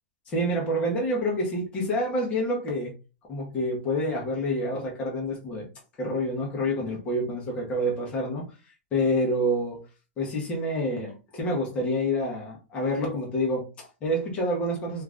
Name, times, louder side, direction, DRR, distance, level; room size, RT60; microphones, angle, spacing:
voice 1, 0.3-2.9 3.3-5.7 6.0-8.5 8.9-9.8 10.2-15.0, equal, 15° left, 0.8 m, -27 dB
2.5 x 2.4 x 3.3 m
supercardioid pair, 180°, 7 cm